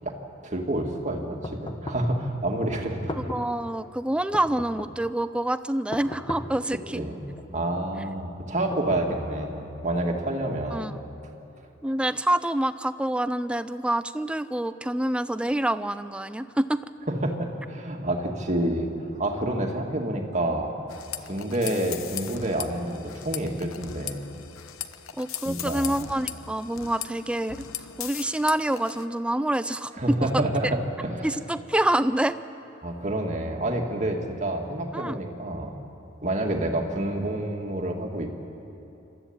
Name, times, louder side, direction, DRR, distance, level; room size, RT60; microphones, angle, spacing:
voice 1, 0.4-3.2 6.9-7.2 7.5-10.9 11.9-12.0 17.2-18.9 19.2-20.8 21.2-24.3 25.5-25.9 30.0-31.3 32.8-35.7 36.2-38.3, right 1 dB, 35° right, 2 dB, 2.1 m, -28 dB
sound 1, 1.4-2.2 2.9-3.6 4.3-5.1 5.9-6.7 7.4-8.0 8.7-9.6, left 1 dB, 25° left, 1.1 m, -37 dB
voice 2, 3.3-7.0 10.7-10.9 11.8-16.8 25.2-27.7 28.0-30.7 31.2-32.4 34.9-35.2, right 1 dB, 5° right, 13 dB, 0.4 m, -27 dB
sound 2, 20.9-29.1, left 10 dB, 80° left, 0.9 m, -38 dB
27.0 x 13.5 x 8.8 m, 2.9 s
head